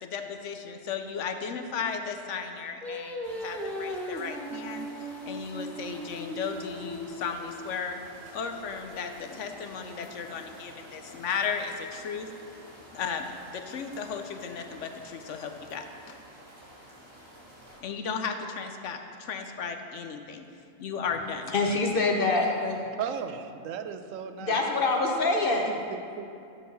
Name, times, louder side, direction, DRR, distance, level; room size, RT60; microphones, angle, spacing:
voice 1, 0.0-4.9 5.2-8.0 8.3-12.3 12.9-16.2 17.8-20.5 20.8-21.5, left 6 dB, 70° left, 6 dB, 1.0 m, -35 dB
Singing, 2.8-8.1, equal, ahead, 0.5 m, -38 dB
sound 1, 3.2-17.8, equal, 20° right, 1.6 m, -50 dB
voice 2, 21.5-22.8 24.4-25.7, left 3 dB, 45° left, 1 dB, 1.0 m, -25 dB
voice 3, 23.0-24.6 25.9-26.3, right 7 dB, 85° right, 8 dB, 1.0 m, -35 dB
11.5 x 4.2 x 6.7 m, 2.5 s
omnidirectional pair, 1.3 m